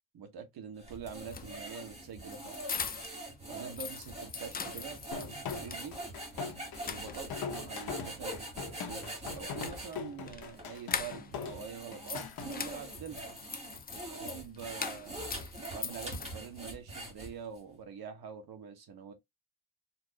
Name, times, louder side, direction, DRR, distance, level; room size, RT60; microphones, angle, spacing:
voice 1, 0.1-2.7 3.5-6.0 6.8-8.3 8.7-12.2 12.5-13.3 14.2-15.3 15.7-19.1, right 7 dB, 70° right, 1.1 m, -45 dB
sound 1, 0.8-9.9 10.6-10.7 11.3-17.6, right 1 dB, 15° right, 1.3 m, -43 dB
sound 2, 1.2-3.3 3.6-5.9 6.3-6.4 6.7-7.6 9.2-11.5 11.8-16.7, left 6 dB, 25° left, 0.4 m, -42 dB
sound 3, 5.1-12.5, left 6 dB, 65° left, 0.9 m, -41 dB
4.3 x 2.5 x 2.8 m
wide cardioid pair, 175°, 38 cm